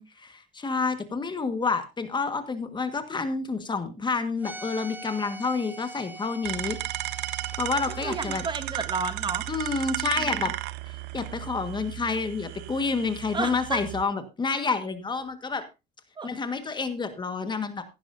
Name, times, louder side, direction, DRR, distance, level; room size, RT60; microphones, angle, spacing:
voice 1, 0.0-6.8 7.6-8.4 9.5-10.5 11.1-15.6 16.2-17.8, left 4 dB, 25° left, 9 dB, 1.6 m, -29 dB
sound 1, 4.4-8.5, right 1 dB, 10° right, 1.3 m, -43 dB
sound 2, 6.4-14.0, right 18 dB, 85° right, 0.7 m, -34 dB
voice 2, 7.9-9.5 10.0-10.5 13.3-13.8 16.2-16.3, right 4 dB, 25° right, 11 dB, 1.2 m, -32 dB
16.0 x 11.0 x 2.7 m, 0.26 s
cardioid pair, 110°, 17 cm